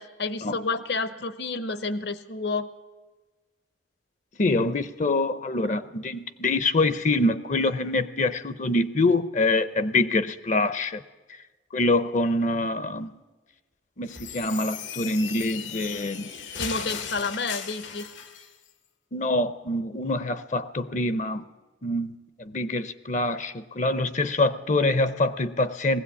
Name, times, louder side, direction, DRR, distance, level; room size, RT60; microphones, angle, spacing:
voice 1, 0.0-2.7 16.6-18.1, left 3 dB, 65° left, 12 dB, 0.9 m, -30 dB
voice 2, 4.4-11.0 11.3-11.4 11.7-13.1 14.0-16.3 19.1-21.4 21.8-26.0, left 2 dB, 40° left, 13 dB, 0.6 m, -25 dB
sound 1, 14.1-18.5, left 7 dB, 85° left, 1.5 m, -37 dB
19.5 x 16.0 x 8.4 m, 1.3 s
head